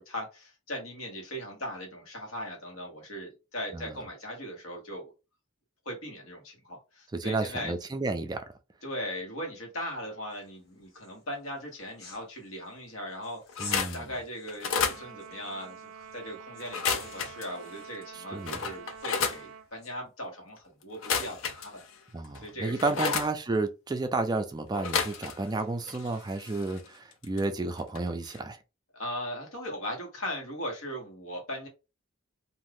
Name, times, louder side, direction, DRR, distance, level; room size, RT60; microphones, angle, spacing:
voice 1, 0.0-5.1 5.8-7.7 8.8-21.8 22.4-23.1 28.9-31.7, equal, 85° left, 1.3 m, -39 dB
voice 2, 7.1-8.4 13.6-14.1 18.1-18.6 22.1-28.6, right 2 dB, 20° right, 0.3 m, -31 dB
sound 1, 10.3-20.0, left 4 dB, 50° left, 1.0 m, -53 dB
sound 2, 13.5-14.0 14.5-15.0 16.6-17.5 18.0-18.1 18.5-19.4 20.9-21.9 22.3-23.3 24.7-25.6 25.8-27.4 27.8-28.0 28.3-28.4, left 6 dB, 70° left, 0.5 m, -31 dB
Trumpet, 14.7-19.7, right 7 dB, 90° right, 0.4 m, -47 dB
2.6 x 2.4 x 3.4 m
head